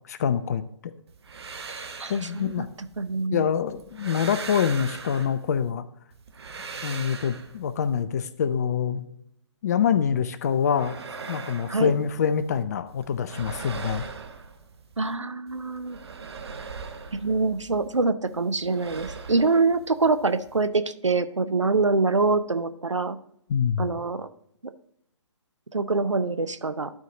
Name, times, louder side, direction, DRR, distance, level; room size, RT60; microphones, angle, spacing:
voice 1, 0.1-0.6 2.1-2.7 3.3-5.9 6.8-9.0 9.6-11.0 11.3-14.1 23.5-23.9, left 7 dB, 35° left, 14 dB, 0.5 m, -25 dB
sound 1, 1.1-3.3 3.7-5.7 6.1-8.0 10.4-12.6 12.9-15.1 15.5-18.0 18.3-20.7, right 5 dB, 60° right, 1.1 m, -41 dB
voice 2, 1.7-2.7 3.0-3.4 11.7-12.0 15.0-16.0 17.1-23.2 23.8-24.3 25.7-26.9, right 3 dB, 80° right, 11 dB, 0.7 m, -25 dB
12.0 x 4.6 x 3.9 m, 0.72 s
figure-of-eight pair, 135°, 15 cm